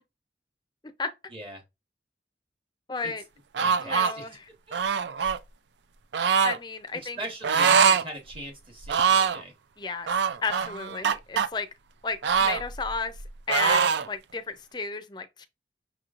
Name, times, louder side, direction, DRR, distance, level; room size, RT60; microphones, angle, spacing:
voice 1, 1.3-1.6 3.0-3.1 3.6-4.3 4.7-4.8 6.9-9.5, right 1 dB, 30° right, 1.1 m, -39 dB
voice 2, 2.9-3.2 3.8-4.4 6.4-7.2 9.8-10.1 10.4-11.7 12.0-13.2 13.5-15.5, left 4 dB, 25° left, 0.5 m, -33 dB
sound 1, 3.5-4.1 4.7-5.4 6.1-6.6 7.4-8.0 8.4-8.5 8.8-9.4 10.1-11.5 12.2-13.2 13.5-14.1, right 6 dB, 75° right, 0.4 m, -23 dB
6.0 x 3.0 x 2.4 m
head